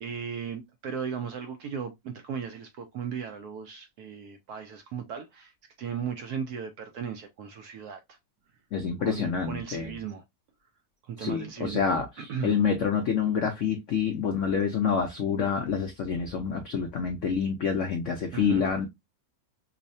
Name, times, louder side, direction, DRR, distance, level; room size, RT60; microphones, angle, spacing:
voice 1, 0.0-5.5 5.8-8.2 9.0-10.2 11.0-11.9 12.2-12.6 18.3-18.7, right 7 dB, 70° right, 0.9 m, -36 dB
voice 2, 8.7-10.0 11.2-18.9, left 6 dB, 75° left, 0.6 m, -27 dB
5.4 x 2.1 x 2.6 m
omnidirectional pair, 2.0 m